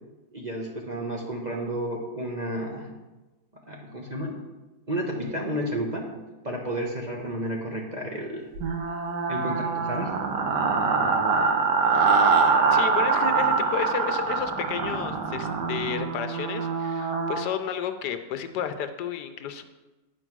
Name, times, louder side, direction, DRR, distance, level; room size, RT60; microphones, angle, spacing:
voice 1, 0.3-2.9 3.7-4.3 4.9-6.1 6.4-8.5 9.3-10.1, right 1 dB, 30° right, -1 dB, 1.0 m, -31 dB
sound 1, 8.6-17.5, right 5 dB, 80° right, 1.5 m, -24 dB
voice 2, 12.7-19.6, left 8 dB, 75° left, 9 dB, 1.2 m, -32 dB
9.0 x 4.5 x 6.0 m, 1.1 s
omnidirectional pair, 1.8 m